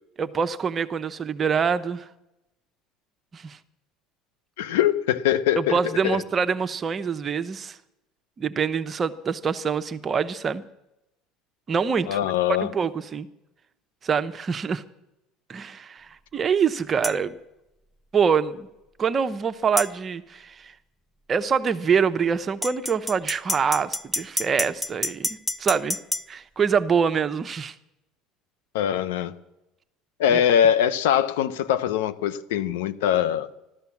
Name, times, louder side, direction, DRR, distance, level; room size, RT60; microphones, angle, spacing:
voice 1, 0.2-2.1 3.3-3.6 5.6-7.8 8.4-10.6 11.7-12.3 12.6-13.3 14.0-14.8 15.5-17.3 18.1-18.7 19.0-20.7 21.3-26.0 26.3-27.7 30.3-30.4, right 6 dB, 35° right, 10 dB, 0.9 m, -25 dB
voice 2, 4.6-6.2 12.1-12.7 28.7-29.3 30.2-33.5, left 10 dB, 90° left, 14 dB, 0.9 m, -22 dB
sound 1, 17.0-17.2 19.8-19.9 22.6-26.3, left 1 dB, 5° left, 0.5 m, -28 dB
15.0 x 13.0 x 7.2 m, 0.92 s
supercardioid pair, 100°, 0 cm